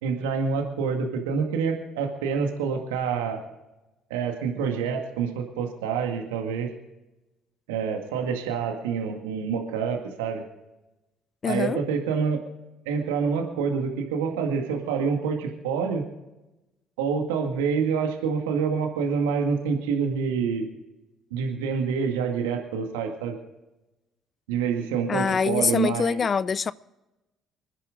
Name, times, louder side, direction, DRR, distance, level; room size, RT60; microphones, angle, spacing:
voice 1, 0.0-3.4 4.1-6.7 7.7-10.4 11.5-12.4 12.9-16.0 17.0-20.7 21.3-23.4 24.5-26.3, right 6 dB, 80° right, 2.0 m, -27 dB
voice 2, 11.4-11.8 25.1-26.7, left 6 dB, 40° left, 0.5 m, -24 dB
26.0 x 10.0 x 3.8 m
hypercardioid pair, 55°, 0 cm